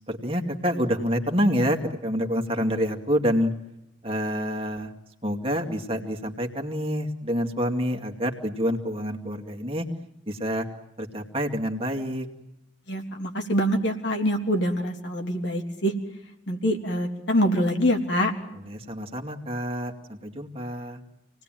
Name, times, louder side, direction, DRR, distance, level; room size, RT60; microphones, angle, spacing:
voice 1, 0.1-3.5 4.0-4.9 5.2-9.9 10.3-10.7 11.0-12.3 18.5-21.0, equal, 30° right, 3 dB, 2.4 m, -27 dB
voice 2, 12.9-15.9 16.5-18.3, equal, 60° left, 3 dB, 3.4 m, -25 dB
28.0 x 19.5 x 9.2 m, 0.87 s
head